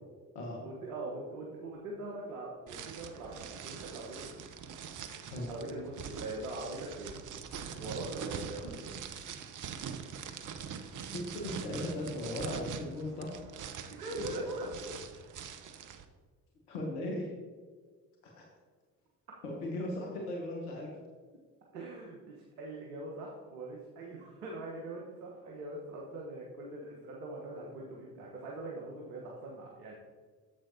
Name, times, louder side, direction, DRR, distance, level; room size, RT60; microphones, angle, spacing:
voice 1, 0.6-4.4 5.5-7.2 7.8-8.9 13.9-15.0 21.7-29.9, right 2 dB, 80° right, -2 dB, 1.3 m, -42 dB
sound 1, 2.7-16.0, right 7 dB, 45° right, 0.8 m, -43 dB
voice 2, 11.1-13.3 16.7-17.3 18.2-18.4 19.4-20.9, left 1 dB, 75° left, -1 dB, 1.5 m, -37 dB
10.0 x 7.6 x 2.8 m, 1.5 s
hypercardioid pair, 55°, 45 cm